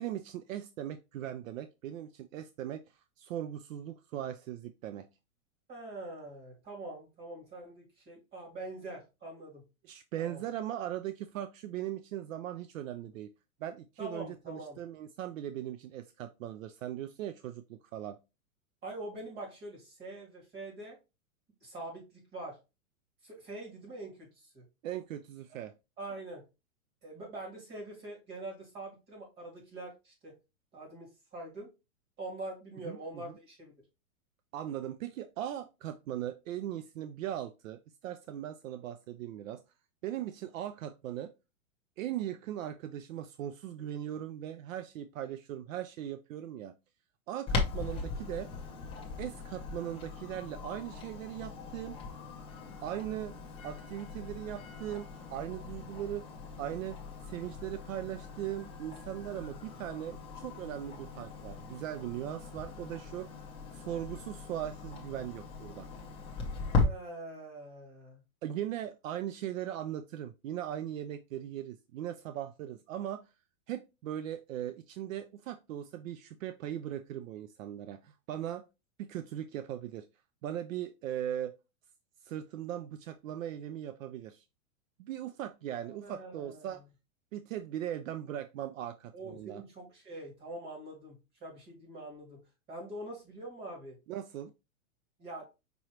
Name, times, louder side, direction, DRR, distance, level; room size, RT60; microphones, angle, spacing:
voice 1, 0.0-5.1 9.8-13.3 13.6-18.2 24.8-25.7 32.8-33.3 34.5-39.6 40.0-41.3 42.0-46.7 47.3-48.5 49.2-52.0 52.8-53.3 53.6-56.2 56.6-57.0 57.3-63.3 63.7-65.9 68.4-73.3 73.7-78.6 79.0-80.1 80.4-81.5 82.2-84.4 85.0-86.8 87.3-89.6 94.1-94.5, right 11 dB, 70° right, 0.6 m, -39 dB
voice 2, 5.7-9.6 10.2-10.4 14.0-14.8 18.8-21.0 21.6-22.6 23.2-24.6 26.0-26.5 27.0-30.4 30.7-31.7 32.2-33.7 66.8-68.2 85.8-86.8 89.1-92.4 92.7-94.0 95.2-95.4, right 2 dB, 25° right, 2.3 m, -44 dB
Clock, 47.5-66.8, left 4 dB, 15° left, 0.7 m, -39 dB
5.4 x 3.0 x 3.0 m
supercardioid pair, 155°, 41 cm